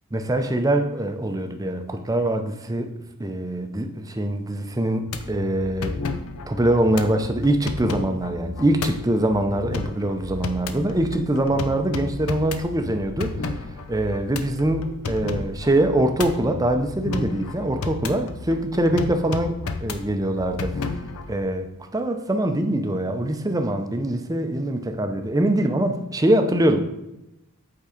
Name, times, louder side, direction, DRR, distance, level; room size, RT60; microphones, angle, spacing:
voice 1, 0.1-2.9 3.2-6.0 6.5-13.6 13.9-20.9 21.3-26.8, right 1 dB, 15° right, 6 dB, 0.6 m, -23 dB
sound 1, 5.1-21.4, left 3 dB, 70° left, 0.6 m, -32 dB
8.3 x 3.7 x 5.0 m, 0.93 s
head